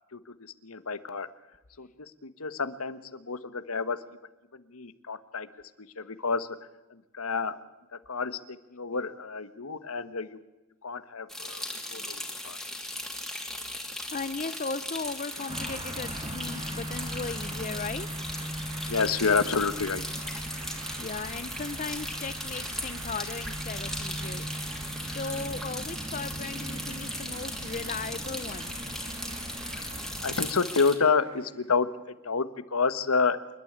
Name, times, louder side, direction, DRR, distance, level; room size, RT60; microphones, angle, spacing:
voice 1, 0.6-1.3 1.8-1.9 2.2-4.0 4.5-5.5 6.0-6.5 6.9-7.6 8.1-10.4 10.8-11.6 11.9-12.6 18.9-20.0 25.0-25.2 29.7-29.9 30.2-32.5 32.7-33.4, left 4 dB, 80° left, 13 dB, 1.3 m, -29 dB
sound 1, 11.3-31.0, left 1 dB, ahead, 2.8 m, -38 dB
voice 2, 14.1-18.1 21.0-24.4 25.0-28.9, left 4 dB, 35° left, 13 dB, 0.7 m, -37 dB
sound 2, 15.3-31.8, right 5 dB, 90° right, 3.0 m, -48 dB
sound 3, 15.5-30.5, right 1 dB, 25° right, 1.7 m, -40 dB
28.0 x 12.5 x 8.7 m, 1.1 s
head